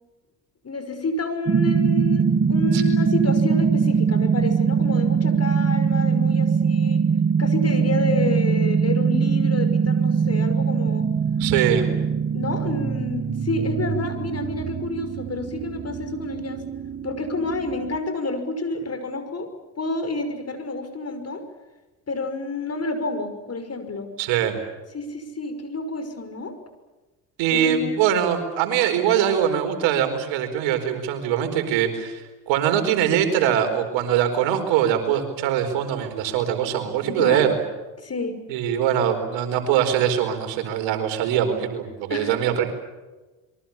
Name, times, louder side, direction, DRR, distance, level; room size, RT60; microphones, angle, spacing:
voice 1, 0.6-7.0 7.4-11.1 12.3-16.6 17.0-19.5 19.8-21.4 22.1-24.1 24.9-26.6 27.5-28.0 37.1-37.5 38.0-38.4 42.1-42.4, left 2 dB, 35° left, 9 dB, 5.8 m, -29 dB
sound 1, 1.5-18.0, right 6 dB, 30° right, 1.4 m, -22 dB
voice 2, 11.4-11.9 24.2-24.6 27.4-37.5 38.5-42.6, right 9 dB, 80° right, 6 dB, 4.6 m, -22 dB
27.0 x 23.5 x 7.3 m, 1.2 s
supercardioid pair, 75°, 45 cm